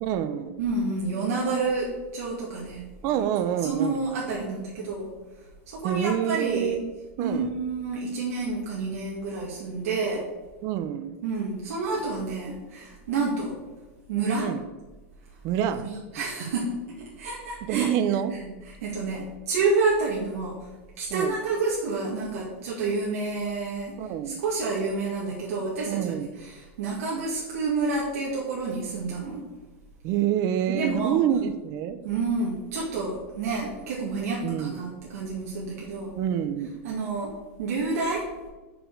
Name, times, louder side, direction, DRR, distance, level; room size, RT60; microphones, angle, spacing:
voice 1, 0.0-0.6 3.0-4.0 5.8-6.8 7.2-7.5 10.6-11.2 14.4-14.6 15.4-15.9 17.7-18.4 21.1-21.3 24.0-24.4 25.9-26.3 30.0-32.0 34.4-34.7 36.1-36.8, right 10 dB, 40° right, 11 dB, 0.6 m, -27 dB
voice 2, 0.6-2.8 3.6-5.1 5.7-6.8 7.2-10.2 11.2-13.5 14.1-14.5 15.6-17.9 18.6-20.6 21.0-23.9 24.2-29.4 30.7-31.2 32.0-36.1 36.8-37.3 37.6-38.3, right 3 dB, 80° right, -4 dB, 1.9 m, -29 dB
6.1 x 5.2 x 6.5 m, 1.2 s
supercardioid pair, 155°, 8 cm